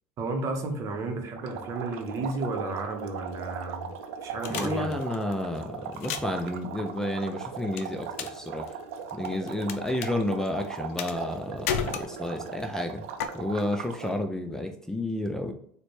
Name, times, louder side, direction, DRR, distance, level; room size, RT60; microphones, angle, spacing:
voice 1, 0.2-3.9 4.2-4.9, right 3 dB, 45° right, 5 dB, 0.8 m, -32 dB
sound 1, 1.4-14.2, right 6 dB, 80° right, 0.4 m, -39 dB
sound 2, 4.4-5.3 5.9-6.4 7.8-8.4 8.7-9.7 10.0-10.1 11.0-11.4 11.7-12.5 13.2-13.3, left 8 dB, 85° left, 0.4 m, -32 dB
voice 2, 4.5-8.8 9.1-13.0 13.3-15.5, left 1 dB, 5° left, 4 dB, 0.4 m, -31 dB
4.0 x 2.2 x 3.1 m, 0.67 s
supercardioid pair, 95°, 7 cm